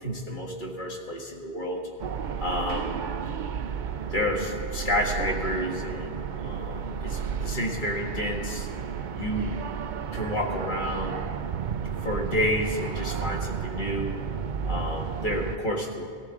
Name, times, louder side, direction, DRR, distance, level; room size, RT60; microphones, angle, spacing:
voice 1, 0.0-1.9 2.4-3.1 4.1-8.7 9.1-9.6 10.1-11.2 12.0-14.2 14.6-16.1, left 1 dB, 45° left, 0 dB, 1.8 m, -30 dB
sound 1, 2.0-15.6, right 7 dB, 55° right, 0.6 m, -32 dB
20.0 x 14.5 x 3.8 m, 2.3 s
omnidirectional pair, 1.2 m